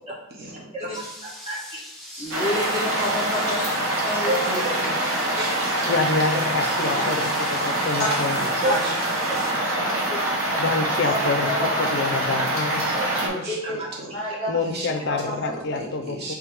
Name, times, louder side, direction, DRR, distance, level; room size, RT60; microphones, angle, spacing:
voice 1, 0.1-0.5 0.7-0.9 1.2-1.8 2.1-2.3 3.5-3.6 4.1-4.7 5.0-5.1 5.6-6.3 6.6-6.7 7.9-8.0 8.5-8.7 9.9-10.3 12.2-12.3 12.8-13.1 13.8-13.9 14.3-14.4, right 1 dB, 30° right, -5 dB, 1.2 m, -32 dB
sound 1, 0.9-9.5, left 1 dB, ahead, 0.8 m, -41 dB
voice 2, 2.2-3.7 4.0-4.4 6.8-7.0 8.0-8.1 8.6-8.7 11.1-11.9 13.6-13.8 14.1-14.5 15.4-15.5, left 1 dB, 20° left, -4 dB, 1.5 m, -28 dB
sound 2, 2.3-13.3, right 1 dB, 75° right, 1.0 m, -25 dB
voice 3, 4.5-5.7 8.3-8.9 9.2-9.3 13.2-14.1 14.6-14.9 15.2-16.3, right 1 dB, 50° right, -2 dB, 1.0 m, -36 dB
voice 4, 5.8-8.4 10.6-12.8 14.5-16.3, left 4 dB, 55° left, 6 dB, 0.4 m, -27 dB
3.4 x 3.2 x 4.7 m, 0.88 s
head